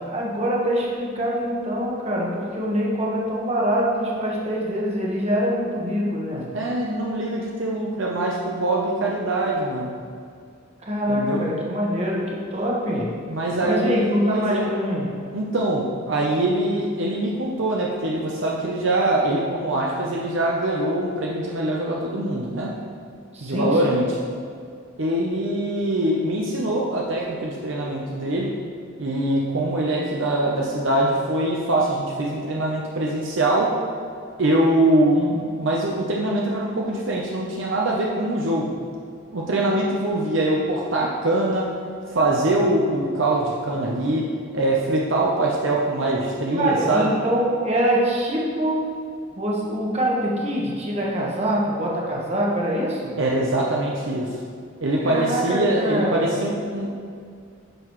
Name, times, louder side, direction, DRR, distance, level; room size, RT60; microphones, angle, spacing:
voice 1, 0.1-6.5 10.8-13.1 13.6-15.1 23.3-24.0 35.1-35.4 46.5-48.9 49.4-53.2 55.0-56.3, equal, 30° right, -3 dB, 1.3 m, -24 dB
voice 2, 6.5-10.0 11.1-11.5 13.3-14.7 15.3-22.8 23.4-24.1 25.0-28.6 29.0-33.8 34.4-38.7 39.3-41.7 42.1-47.1 53.2-54.4 54.8-56.9, right 1 dB, 65° right, -2 dB, 0.7 m, -23 dB
10.0 x 5.9 x 3.1 m, 2.3 s
head